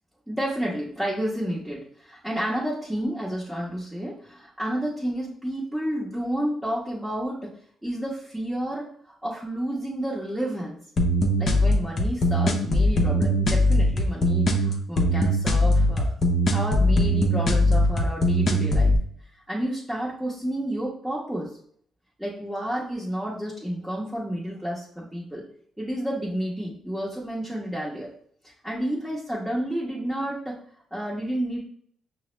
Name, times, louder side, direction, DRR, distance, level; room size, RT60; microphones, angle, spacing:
voice 1, 0.3-7.5 7.8-8.9 9.2-10.8 11.4-16.1 16.5-18.9 19.5-21.5 22.2-25.4 25.8-28.1 28.6-30.6 30.9-31.7, right 1 dB, 5° right, -7 dB, 0.8 m, -30 dB
sound 1, 11.0-19.0, equal, 45° left, 0.6 m, -21 dB
5.5 x 2.0 x 3.1 m, 0.63 s
cardioid pair, 90°, 0 cm